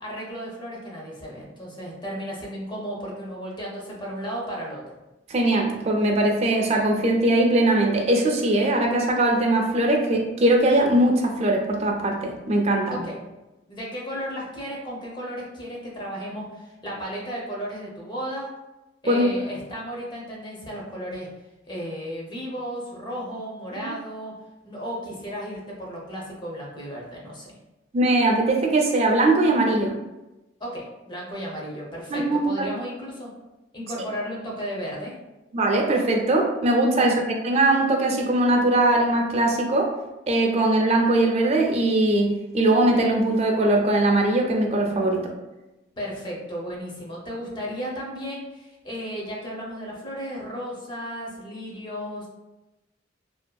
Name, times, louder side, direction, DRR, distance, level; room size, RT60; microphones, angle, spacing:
voice 1, 0.0-4.8 12.9-13.2 13.7-18.5 19.0-21.3 21.7-24.3 24.6-27.6 30.6-33.3 33.7-35.1 37.0-37.1 46.0-52.3, equal, 25° left, -3 dB, 0.6 m, -34 dB
voice 2, 5.3-13.0 19.1-19.3 23.8-23.9 27.9-29.9 32.1-32.7 35.5-39.9 40.3-45.3, right 1 dB, 35° right, 1 dB, 0.4 m, -21 dB
2.6 x 2.2 x 2.2 m, 1.0 s
head